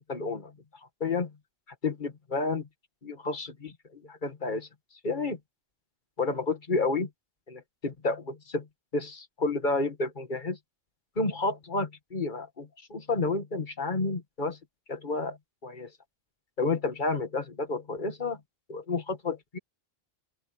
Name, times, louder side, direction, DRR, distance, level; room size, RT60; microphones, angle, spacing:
voice 1, 0.1-0.5 1.0-1.3 1.8-2.7 3.0-4.7 5.0-5.4 6.2-7.1 7.5-8.7 8.9-10.6 11.2-14.6 14.9-15.4 15.6-15.9 16.6-18.4 18.7-19.6, left 3 dB, 50° left, 2.1 m, -30 dB
open air
omnidirectional pair, 1.0 m